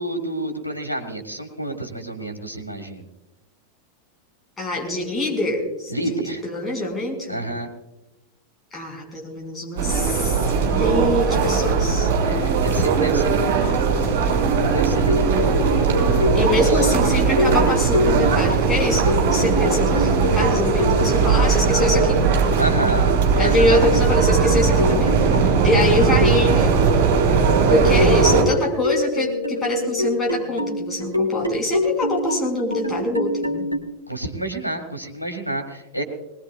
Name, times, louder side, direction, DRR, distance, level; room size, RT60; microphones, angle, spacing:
voice 1, 0.0-3.1 5.9-6.4 7.3-7.7 12.2-14.5 14.7-16.2 16.7-16.9 22.6-23.8 34.1-36.0, right 1 dB, 90° right, 4 dB, 2.0 m, -29 dB
voice 2, 4.6-6.2 6.4-7.4 8.7-12.1 16.3-22.2 23.4-25.1 25.6-26.8 27.7-33.7, left 1 dB, 20° left, 0 dB, 5.6 m, -24 dB
sound 1, 9.8-28.4, right 5 dB, 50° right, 5.3 m, -19 dB
sound 2, 14.6-22.4 23.1-26.7 27.3-33.8, left 2 dB, 90° left, 1.5 m, -27 dB
20.5 x 20.5 x 2.4 m, 0.98 s
figure-of-eight pair, 90°, 0 cm